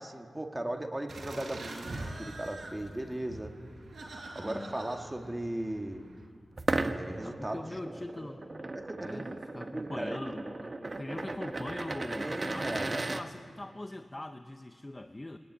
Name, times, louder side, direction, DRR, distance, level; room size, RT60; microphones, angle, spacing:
voice 1, 0.0-3.5 4.4-6.1 6.9-7.6 8.7-9.4 9.6-10.2 12.1-13.0, right 1 dB, 15° right, 3 dB, 1.9 m, -37 dB
sound 1, 1.1-6.3, right 2 dB, 70° right, 4.9 m, -44 dB
voice 2, 4.4-4.8 7.2-15.4, left 1 dB, 25° left, 7 dB, 0.8 m, -42 dB
sound 2, 6.5-13.2, right 2 dB, 40° right, 1.2 m, -36 dB
21.5 x 19.0 x 9.9 m, 2.1 s
wide cardioid pair, 95°, 0 cm